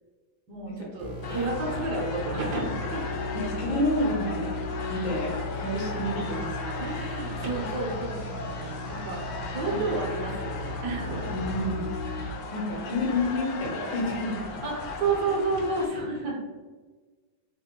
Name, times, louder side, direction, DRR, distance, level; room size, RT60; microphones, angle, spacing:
voice 1, 0.5-3.0 6.8-9.2 9.5-11.3 14.5-16.4, right 3 dB, 65° right, -2 dB, 1.3 m, -31 dB
sound 1, 1.0-12.3, left 2 dB, 85° right, 0.3 m, -36 dB
sound 2, 1.2-15.9, left 3 dB, 75° left, 1.1 m, -37 dB
voice 2, 3.3-4.6 4.9-6.8 9.7-9.8 11.3-11.8 12.5-14.4, left 1 dB, 90° left, -1 dB, 1.9 m, -29 dB
4.3 x 2.1 x 3.6 m, 1.4 s
omnidirectional pair, 2.1 m